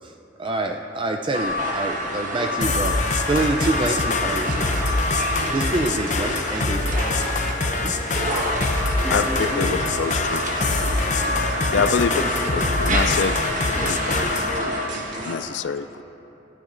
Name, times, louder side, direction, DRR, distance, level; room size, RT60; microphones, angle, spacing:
voice 1, 0.4-4.8 5.5-7.1 7.8-7.9, right 2 dB, 25° right, 4 dB, 0.4 m, -26 dB
sound 1, 1.3-14.9, equal, 45° right, 1.4 m, -28 dB
sound 2, 2.6-14.6, left 3 dB, 40° left, 0.7 m, -25 dB
sound 3, 3.3-15.4, right 1 dB, 80° right, 2.8 m, -36 dB
voice 2, 9.0-9.8 11.7-12.6 13.8-14.7, equal, 10° right, -3 dB, 1.7 m, -32 dB
voice 3, 9.6-10.4 11.7-12.1 12.8-13.4 13.9-14.0 15.3-16.0, left 6 dB, 80° left, 12 dB, 0.4 m, -24 dB
24.0 x 14.0 x 2.6 m, 3.0 s
head